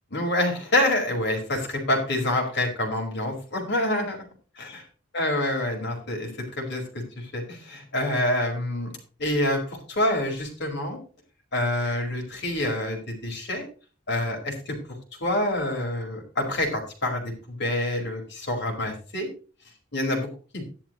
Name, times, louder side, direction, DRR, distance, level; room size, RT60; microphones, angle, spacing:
voice 1, 0.1-4.2 4.6-4.8 5.1-8.9 9.2-11.0 11.5-13.6 14.1-14.8 15.2-19.3 19.9-20.3 20.5-20.6, left 1 dB, 60° left, 2 dB, 5.0 m, -27 dB
13.0 x 11.5 x 3.1 m, 0.36 s
head